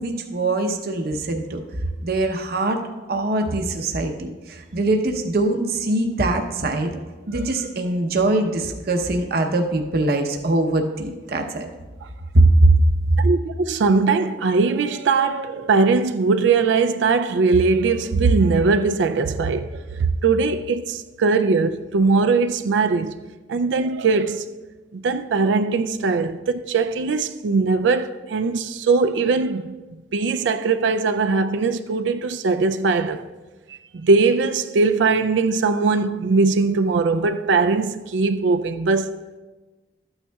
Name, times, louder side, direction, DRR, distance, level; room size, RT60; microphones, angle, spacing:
voice 1, 0.0-1.6 2.0-2.8 3.1-6.9 7.3-11.7 12.3-12.7, right 2 dB, 55° right, 0.8 m, -21 dB
voice 2, 13.2-23.2 23.5-24.5 24.9-29.7 30.1-33.2 33.9-39.2, right 4 dB, 75° right, 0.4 m, -20 dB
13.5 x 8.9 x 2.3 m
head